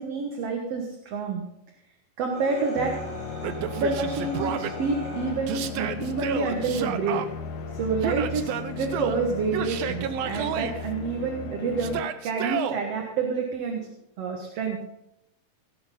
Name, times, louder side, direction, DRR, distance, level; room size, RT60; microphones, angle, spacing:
voice 1, 0.0-1.4 2.2-2.9 3.7-7.2 7.7-8.5 8.8-13.9 14.2-14.8, right 4 dB, 55° right, 2 dB, 2.2 m, -28 dB
sound 1, 2.3-11.5, left 1 dB, 35° right, 3.9 m, -43 dB
sound 2, 2.8-12.0, left 5 dB, 70° left, 2.2 m, -37 dB
Yell, 3.4-4.7 5.5-7.3 8.0-9.2 9.5-10.7 11.8-12.8, right 9 dB, 70° right, 1.6 m, -31 dB
16.5 x 8.4 x 5.3 m, 0.83 s
omnidirectional pair, 3.7 m